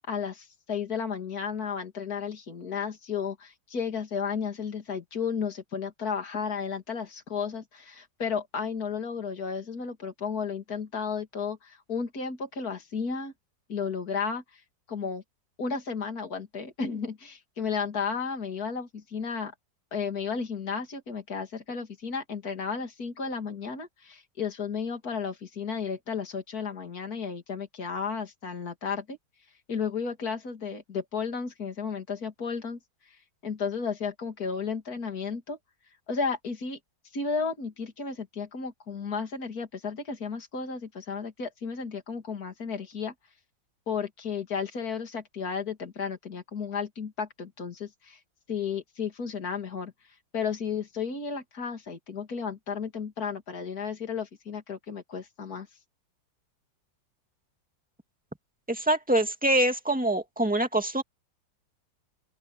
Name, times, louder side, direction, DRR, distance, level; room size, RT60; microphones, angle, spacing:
voice 1, 0.1-13.3 13.7-14.4 14.9-15.2 15.6-19.5 19.9-29.2 29.7-32.8 33.4-35.6 36.1-36.8 37.1-43.1 43.9-48.2 48.5-49.9 50.3-55.7, left 6 dB, 50° left, 3.3 m, -33 dB
voice 2, 58.7-61.0, right 1 dB, 5° right, 2.0 m, -25 dB
open air
omnidirectional pair, 2.0 m